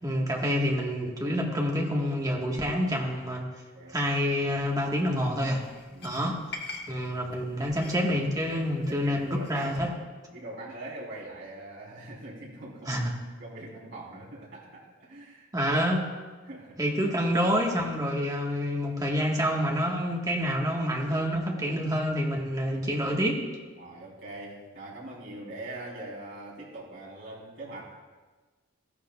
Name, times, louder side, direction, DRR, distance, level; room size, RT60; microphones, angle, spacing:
voice 1, 0.0-3.5 3.9-5.6 6.0-6.5 6.9-9.9 12.9-13.1 15.5-16.1 16.8-23.4, equal, 20° right, -1 dB, 1.2 m, -27 dB
sound 1, 4.6-9.9, left 3 dB, 50° left, 1.2 m, -46 dB
voice 2, 5.9-6.2 7.6-7.8 8.9-10.0 10.3-13.0 13.4-15.5 16.4-16.8 23.8-28.0, right 2 dB, 60° right, -5 dB, 3.3 m, -42 dB
14.5 x 11.0 x 2.2 m, 1.3 s
head